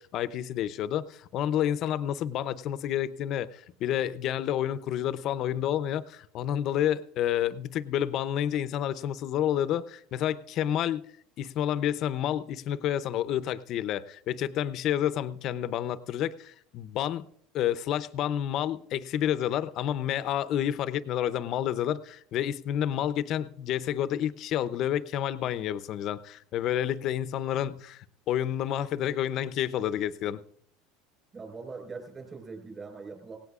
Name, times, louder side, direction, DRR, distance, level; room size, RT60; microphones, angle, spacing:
voice 1, 0.0-11.0 11.4-17.2 17.5-30.4, left 11 dB, 50° left, 16 dB, 0.6 m, -29 dB
voice 2, 31.3-33.4, right 4 dB, 25° right, 4 dB, 4.5 m, -41 dB
17.5 x 17.5 x 2.4 m, 0.65 s
supercardioid pair, 105°, 0 cm